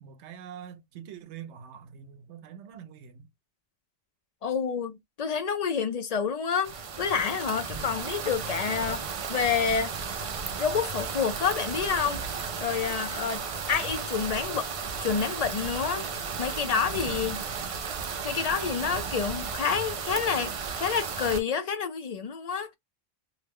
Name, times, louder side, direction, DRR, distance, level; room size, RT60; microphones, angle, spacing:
voice 1, 0.0-3.3, right 8 dB, 85° right, 0.9 m, -44 dB
voice 2, 4.4-9.0 9.3-9.9 10.6-14.7 15.0-17.5 18.2-22.7, left 6 dB, 60° left, 0.4 m, -29 dB
sound 1, 6.6-21.4, right 5 dB, 65° right, 0.3 m, -34 dB
2.7 x 2.1 x 3.4 m
omnidirectional pair, 1.2 m